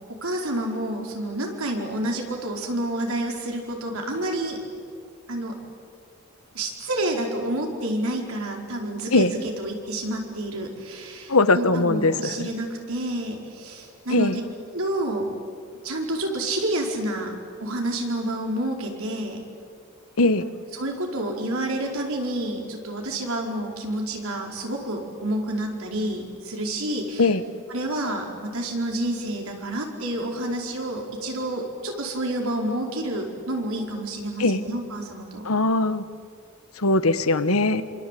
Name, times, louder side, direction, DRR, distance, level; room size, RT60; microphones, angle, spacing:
voice 1, 0.1-4.6 5.3-5.6 6.5-14.4 14.7-15.3 15.8-17.3 17.6-19.4 20.7-27.2 27.7-35.5, right 1 dB, 80° right, 1 dB, 5.1 m, -29 dB
voice 2, 11.3-12.5 14.1-14.4 20.2-20.4 27.2-27.4 34.4-34.6 35.4-36.0 36.8-37.8, left 2 dB, 85° left, 12 dB, 1.3 m, -20 dB
26.5 x 26.0 x 8.6 m, 2.2 s
head